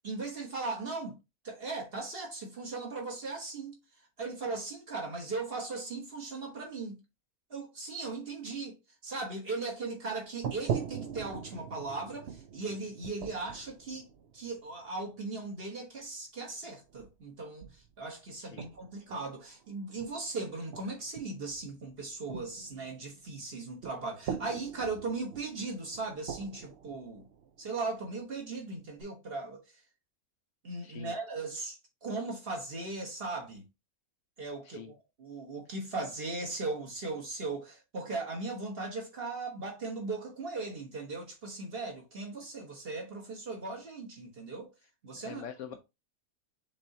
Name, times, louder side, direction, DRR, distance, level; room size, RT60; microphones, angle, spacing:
voice 1, 0.0-1.2 1.4-3.8 4.2-7.0 7.5-8.8 9.0-14.1 14.3-27.2 27.6-29.6 30.6-33.6 34.4-44.7 45.0-45.4, right 3 dB, 45° right, 1.4 m, -38 dB
sound 1, 10.1-10.2 10.4-15.3 16.6-17.2 17.6-17.9 18.6-20.3 20.7-28.2 28.7-29.0, right 8 dB, 60° right, 0.7 m, -42 dB
voice 2, 30.8-31.1 34.7-34.9 45.2-45.7, left 8 dB, 70° left, 0.8 m, -44 dB
6.6 x 3.0 x 2.7 m
omnidirectional pair, 1.5 m